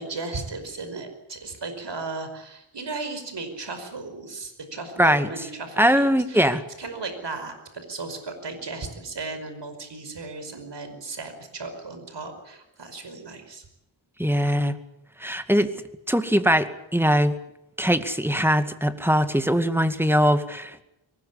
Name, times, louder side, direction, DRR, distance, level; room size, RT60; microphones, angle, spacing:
voice 1, 0.0-13.7, right 3 dB, 65° right, 8 dB, 5.3 m, -36 dB
voice 2, 5.8-6.6 14.2-14.8 15.2-15.7 16.1-17.4 17.8-20.8, equal, 5° right, 10 dB, 2.2 m, -21 dB
23.0 x 20.0 x 8.5 m, 0.84 s
cardioid pair, 65°, 46 cm